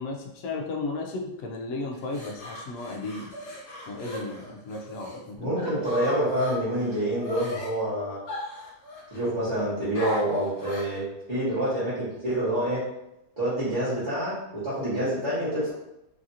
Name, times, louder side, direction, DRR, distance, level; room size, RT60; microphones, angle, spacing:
voice 1, 0.0-3.3 3.9-5.6, left 3 dB, 75° left, 1 dB, 0.7 m, -34 dB
sound 1, 1.9-5.2 5.5-7.7 8.3-9.3 9.9-11.0, left 1 dB, 55° left, 1.5 m, -38 dB
voice 2, 5.4-8.2 9.1-12.8 13.4-15.7, right 1 dB, 30° right, -13 dB, 0.9 m, -27 dB
3.3 x 2.5 x 2.7 m, 0.89 s
omnidirectional pair, 2.0 m